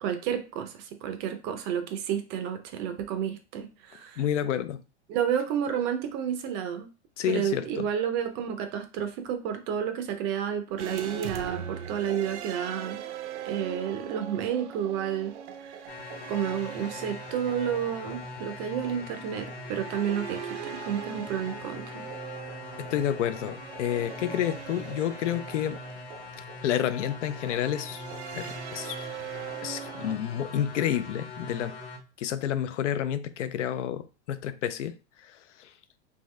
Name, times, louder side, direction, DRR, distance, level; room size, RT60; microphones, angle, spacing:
voice 1, 0.0-4.2 5.1-6.9 7.3-13.0 13.4-15.9 16.3-22.0, right 9 dB, 30° right, 0.4 m, -31 dB
voice 2, 4.2-4.8 7.2-7.8 22.8-25.8 26.6-28.0 28.3-29.1 29.6-31.8 32.2-35.0 35.2-35.7, left 10 dB, 85° left, 0.6 m, -30 dB
sound 1, 10.8-30.1, right 9 dB, 75° right, 0.6 m, -41 dB
sound 2, 15.9-32.0, left 4 dB, 35° left, 0.9 m, -42 dB
3.7 x 2.7 x 3.1 m
supercardioid pair, 145°, 35 cm